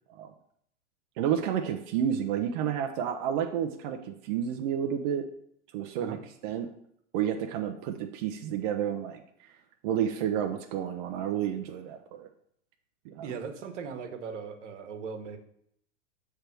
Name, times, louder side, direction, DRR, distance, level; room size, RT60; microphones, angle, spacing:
voice 1, 1.2-5.3 5.7-6.7 7.1-9.5 9.8-12.3 13.0-13.3, right 9 dB, 45° right, 3 dB, 0.6 m, -30 dB
voice 2, 13.2-15.4, right 6 dB, 75° right, 5 dB, 1.2 m, -38 dB
6.6 x 3.4 x 5.9 m, 0.70 s
hypercardioid pair, 140°, 37 cm